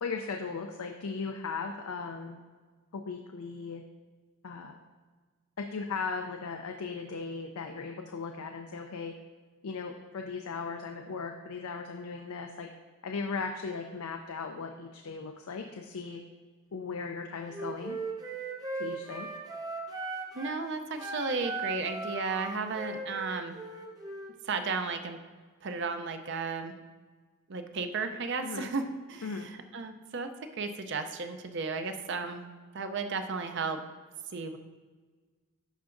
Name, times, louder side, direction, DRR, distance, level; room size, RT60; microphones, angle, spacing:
voice 1, 0.0-2.4 2.9-3.8 4.4-4.8 5.6-9.1 9.6-12.7 13.0-16.2 16.7-18.0 18.8-19.3 28.4-28.7 29.2-29.5, left 4 dB, 90° left, 4 dB, 0.5 m, -37 dB
Wind instrument woodwind instrument, 17.5-20.6 20.9-24.4, right 3 dB, 15° right, 0.7 m, -38 dB
voice 2, 20.3-23.6 24.4-25.2 25.6-26.7 27.5-30.3 30.6-32.5 32.7-33.8 34.3-34.6, right 4 dB, 55° right, 7 dB, 0.5 m, -34 dB
11.5 x 4.7 x 2.6 m, 1.4 s
head